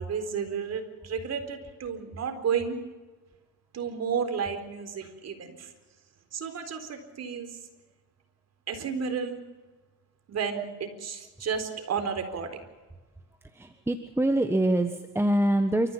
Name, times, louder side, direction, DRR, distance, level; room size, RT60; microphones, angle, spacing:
voice 1, 0.0-2.8 3.7-5.7 6.3-7.5 8.7-9.4 10.3-12.5, right 6 dB, 50° right, 7 dB, 4.2 m, -32 dB
voice 2, 13.5-15.9, right 1 dB, 5° right, 7 dB, 1.4 m, -25 dB
29.0 x 14.5 x 7.4 m, 1.2 s
cardioid pair, 95°, 33 cm